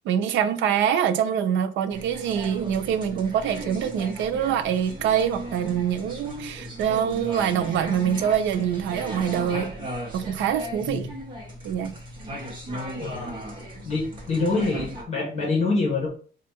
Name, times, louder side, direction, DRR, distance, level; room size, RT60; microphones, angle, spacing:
voice 1, 0.0-9.7 10.1-11.1 11.6-11.9, right 9 dB, 80° right, 0.5 m, -25 dB
sound 1, 1.9-15.0, equal, 25° right, 1.0 m, -37 dB
voice 2, 13.0-13.3 13.8-16.1, left 3 dB, 35° left, 1.4 m, -25 dB
4.1 x 2.5 x 4.4 m
cardioid pair, 170°, 19 cm